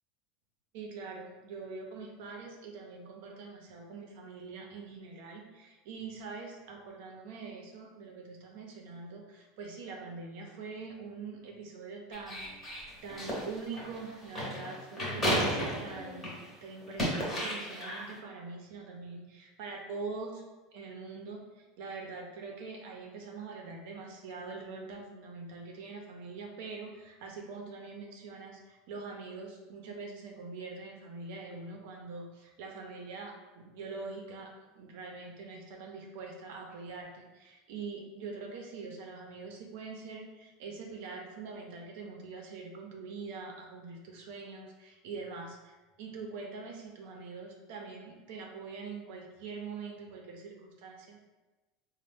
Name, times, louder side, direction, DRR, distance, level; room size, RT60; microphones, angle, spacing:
voice 1, 0.7-16.3 16.6-51.2, right 4 dB, 55° right, 1 dB, 0.6 m, -44 dB
sound 1, 12.1-16.5 16.8-18.1, equal, 10° left, 0.8 m, -33 dB
4.1 x 2.1 x 3.4 m, 1.1 s
supercardioid pair, 175°, 0 cm